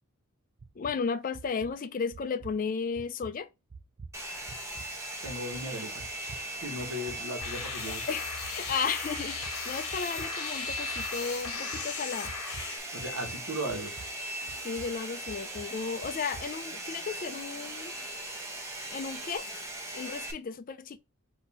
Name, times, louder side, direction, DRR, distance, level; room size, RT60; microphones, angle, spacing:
sound 1, 0.6-1.0 1.3-1.7 2.1-2.6 2.9-3.3 3.7-4.2 4.5-4.9 5.2-5.7 6.0-6.4 6.8-7.2 7.6-8.0 8.4-8.8 9.2-9.5 9.9-10.3 10.7-11.1 11.4-11.8 12.2-12.7 13.0-13.4 13.7-14.1 14.5-14.9 15.3-15.7 16.0-16.4, right 4 dB, 35° right, 0.4 m, -46 dB
voice 1, 0.8-3.5 7.9-12.3 14.6-17.9 18.9-19.4 19.9-21.0, left 5 dB, 40° left, 0.3 m, -34 dB
Domestic sounds home sounds, 4.1-20.3, right 1 dB, 15° right, 0.8 m, -39 dB
voice 2, 5.2-6.4 6.6-8.0 12.9-13.9, equal, 90° right, 1.3 m, -37 dB
sound 2, 7.4-12.8, left 7 dB, 80° left, 0.8 m, -38 dB
4.2 x 2.7 x 4.1 m
head